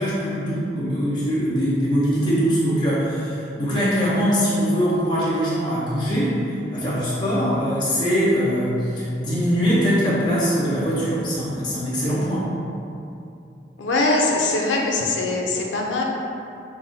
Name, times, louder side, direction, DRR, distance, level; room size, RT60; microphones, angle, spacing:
voice 1, 0.0-6.4 6.7-12.5, equal, 25° left, -10 dB, 1.0 m, -22 dB
voice 2, 13.8-16.0, left 2 dB, 90° left, -1 dB, 0.5 m, -22 dB
4.0 x 2.1 x 4.0 m, 2.7 s
head